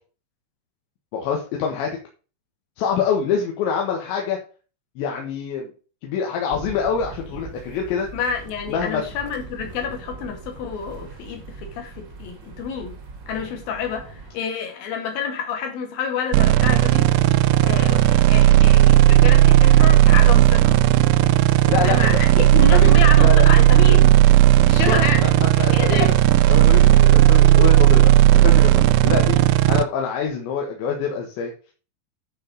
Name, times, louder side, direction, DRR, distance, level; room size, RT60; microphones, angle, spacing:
voice 1, 1.1-2.0 2.8-4.4 5.0-5.7 6.0-8.1 8.7-9.0 21.7-22.1 22.7-22.9 23.2-23.5 24.6-25.0 25.2-26.1 26.5-31.5, left 6 dB, 85° left, 3.8 m, -25 dB
sound 1, 6.5-14.4, right 4 dB, 55° right, 1.3 m, -40 dB
voice 2, 8.1-13.0 13.3-17.1 17.6-20.8 21.8-24.2 24.6-26.2, left 6 dB, 60° left, 3.6 m, -28 dB
sound 2, 16.3-29.8, right 14 dB, 85° right, 2.5 m, -14 dB
9.9 x 4.8 x 5.3 m
omnidirectional pair, 5.0 m